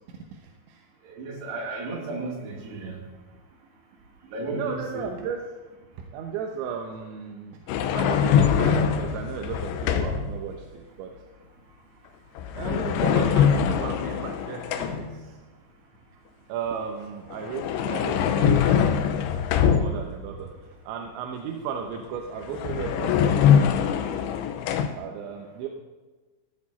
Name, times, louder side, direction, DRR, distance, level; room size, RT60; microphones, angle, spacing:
voice 1, 0.3-0.9 4.5-5.5 6.0-7.6 7.9-11.1 12.6-15.4 16.5-19.0 19.7-20.5 20.8-23.4 25.0-25.7, right 6 dB, 75° right, 2 dB, 3.0 m, -35 dB
voice 2, 1.1-3.0 4.3-5.1, right 3 dB, 60° right, -1 dB, 4.3 m, -34 dB
sound 1, 7.7-10.4 12.4-15.2 17.3-20.2 22.1-22.2 22.5-24.9, left 8 dB, 75° left, 2.9 m, -23 dB
14.5 x 14.0 x 4.2 m, 1.2 s
omnidirectional pair, 5.9 m